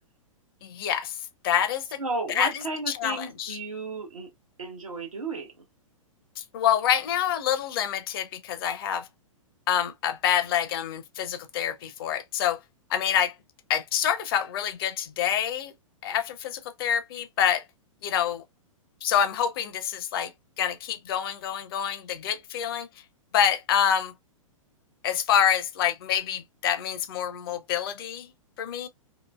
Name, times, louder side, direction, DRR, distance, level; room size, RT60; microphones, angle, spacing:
voice 1, 0.6-1.2 1.4-2.0 2.3-3.6 6.4-9.1 9.7-12.6 12.9-13.3 13.7-15.7 16.0-17.6 18.0-18.4 19.0-20.3 20.6-22.9 23.3-24.1 25.0-28.3 28.6-28.9, left 9 dB, 45° left, 0.5 m, -27 dB
voice 2, 2.0-4.3 4.6-5.5, right 3 dB, 80° right, 0.8 m, -33 dB
2.8 x 2.5 x 2.2 m
figure-of-eight pair, 110°, 17 cm